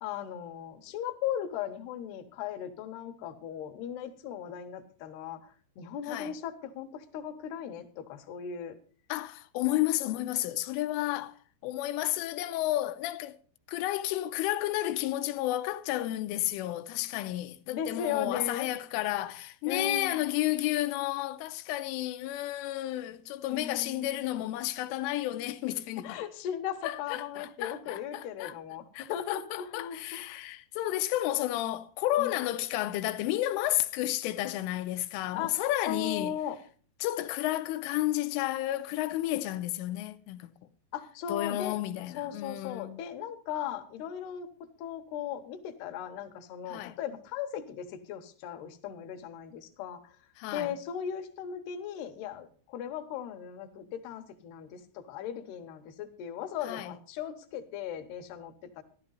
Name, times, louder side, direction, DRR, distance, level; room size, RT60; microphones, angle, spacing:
voice 1, 0.0-8.8 17.7-18.7 19.7-20.2 23.5-24.2 26.0-30.4 32.2-32.3 35.4-35.5 35.9-36.6 40.9-41.8 42.2-44.5 44.8-50.2 50.5-58.8, left 9 dB, 65° left, 2.9 m, -37 dB
voice 2, 9.1-11.3 11.6-13.4 13.7-26.2 26.8-28.6 28.9-36.3 37.0-40.5 41.3-43.0 46.7-47.0 50.4-50.8 56.6-56.9, left 15 dB, 80° left, 3.2 m, -32 dB
14.5 x 12.0 x 4.1 m
omnidirectional pair, 5.7 m